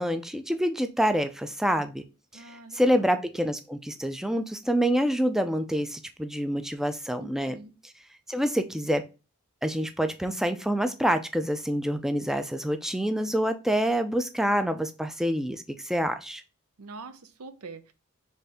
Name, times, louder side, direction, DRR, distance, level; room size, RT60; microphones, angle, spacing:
voice 1, 0.0-2.0 2.3-2.4 2.7-7.6 7.8-7.9 8.3-9.0 9.6-16.4, equal, ahead, 0.3 m, -27 dB
voice 2, 2.3-3.2 7.2-7.7 16.8-17.9, right 4 dB, 90° right, 0.6 m, -45 dB
4.2 x 3.3 x 3.5 m
head